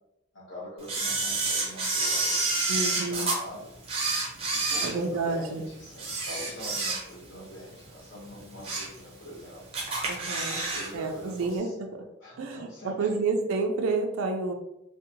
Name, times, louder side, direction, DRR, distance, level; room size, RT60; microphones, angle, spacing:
voice 1, 0.3-3.7 4.5-9.6 10.5-11.8 12.2-13.2, left 1 dB, 65° left, -8 dB, 0.7 m, -44 dB
Camera, 0.9-3.4 3.8-5.5 5.9-7.3 7.7-7.8 8.4-9.0 9.3-9.4 9.7-10.9 11.1-11.2, right 3 dB, 30° right, 0.5 m, -29 dB
voice 2, 2.7-3.3 4.8-5.7 10.1-10.6 10.9-11.7 12.4-14.5, right 3 dB, 90° right, 4 dB, 0.4 m, -29 dB
2.7 x 2.1 x 2.6 m, 0.83 s
head